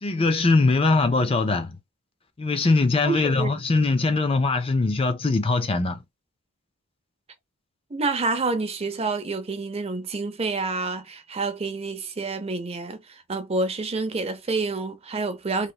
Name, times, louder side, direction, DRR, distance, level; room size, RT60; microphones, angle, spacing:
voice 1, 0.0-1.8 2.4-6.0, left 3 dB, 25° left, 0.4 m, -21 dB
voice 2, 3.0-3.6 7.9-15.7, right 3 dB, 30° right, 0.5 m, -28 dB
3.2 x 2.8 x 2.2 m
head